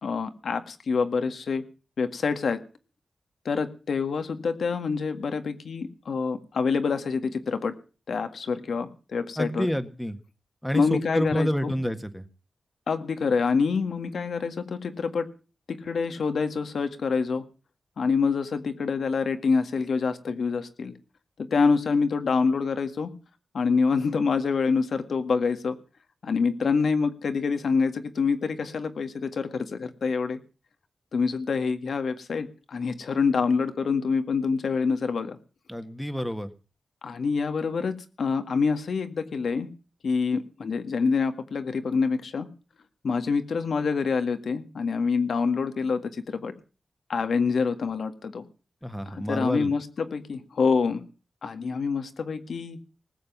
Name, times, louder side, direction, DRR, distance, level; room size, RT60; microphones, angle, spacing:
voice 1, 0.0-1.6 2.0-2.6 3.5-7.8 8.1-9.7 10.7-11.8 12.9-15.3 15.7-17.4 18.0-20.9 21.4-23.1 23.5-25.8 26.2-30.4 31.1-35.4 37.0-39.7 40.0-42.5 43.0-46.5 47.1-48.4 49.1-51.0 51.4-52.8, left 5 dB, 80° left, 9 dB, 1.8 m, -26 dB
voice 2, 9.4-10.2 10.6-12.3 35.7-36.5 48.8-49.7, equal, 5° left, 9 dB, 1.6 m, -28 dB
19.5 x 7.6 x 7.3 m, 0.36 s
wide cardioid pair, 85°, 0 cm